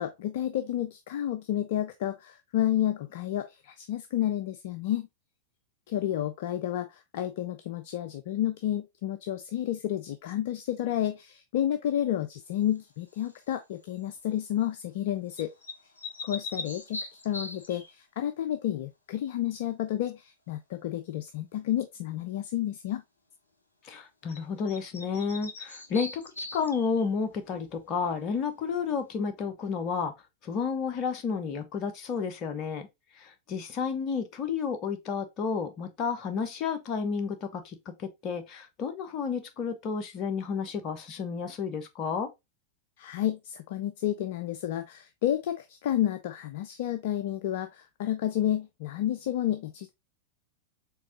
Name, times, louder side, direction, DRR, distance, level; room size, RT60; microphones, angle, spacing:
voice 1, 0.0-5.1 5.9-15.5 16.2-23.0 43.0-49.9, left 12 dB, 55° left, 0.4 m, -31 dB
sound 1, 13.1-13.5 15.3-17.9 24.3-24.4 24.7-27.1, left 2 dB, 75° left, 1.0 m, -40 dB
voice 2, 23.8-30.1 30.4-32.9 33.2-42.3, left 6 dB, 35° left, 0.8 m, -31 dB
4.5 x 3.5 x 2.7 m
figure-of-eight pair, 90°, 0 cm